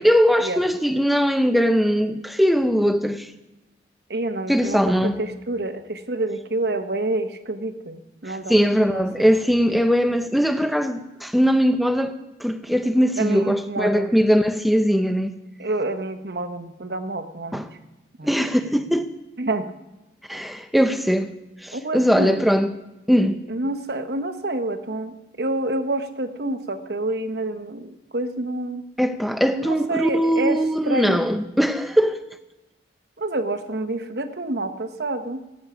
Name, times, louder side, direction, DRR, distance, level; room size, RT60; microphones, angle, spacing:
voice 1, 0.0-3.3 4.5-5.1 8.3-12.1 12.4-15.3 17.5-17.7 18.2-19.1 20.3-21.3 21.6-22.7 23.1-23.4 29.0-32.2, equal, ahead, 0.6 m, -20 dB
voice 2, 4.1-9.3 13.2-14.1 15.6-17.6 18.2-18.3 19.4-19.7 21.7-22.4 23.5-28.8 29.5-30.6 30.8-31.4 33.2-35.4, right 2 dB, 65° right, 1.0 m, -28 dB
17.5 x 8.8 x 5.0 m
head